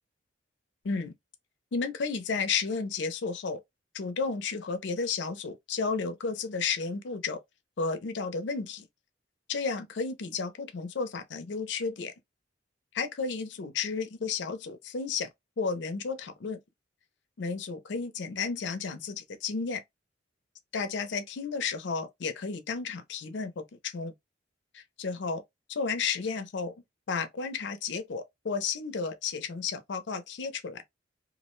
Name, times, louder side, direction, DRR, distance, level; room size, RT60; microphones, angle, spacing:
voice 1, 1.7-3.6 3.9-7.4 7.8-8.9 9.5-12.1 12.9-15.3 15.6-16.6 17.4-19.8 20.7-24.1 24.7-25.4 25.7-26.7 27.1-30.8, left 5 dB, 65° left, 0.5 m, -32 dB
2.5 x 2.0 x 3.0 m
head